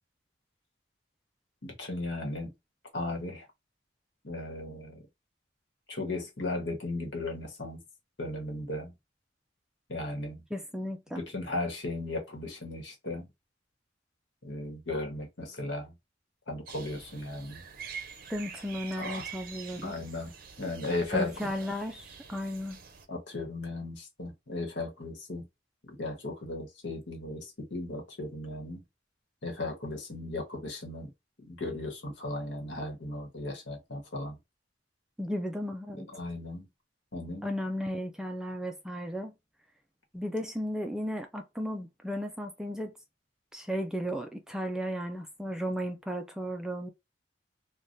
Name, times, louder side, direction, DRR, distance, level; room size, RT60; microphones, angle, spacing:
voice 1, 1.6-2.5 2.9-3.4 4.2-5.0 5.9-7.8 8.2-8.9 9.9-10.4 11.3-13.3 14.4-15.9 16.5-17.6 19.0-19.3 19.8-20.3 20.6-21.5 23.1-25.5 25.9-28.8 29.4-31.1 31.4-34.4 36.1-36.7 37.1-37.5, left 2 dB, 75° left, 1.2 m, -36 dB
voice 2, 10.5-11.2 18.3-20.0 21.1-22.8 35.2-36.1 37.4-39.3 40.1-42.9 43.5-46.9, equal, 5° right, 0.3 m, -35 dB
sound 1, 16.7-23.1, right 6 dB, 50° right, 0.6 m, -46 dB
3.2 x 2.2 x 2.6 m
head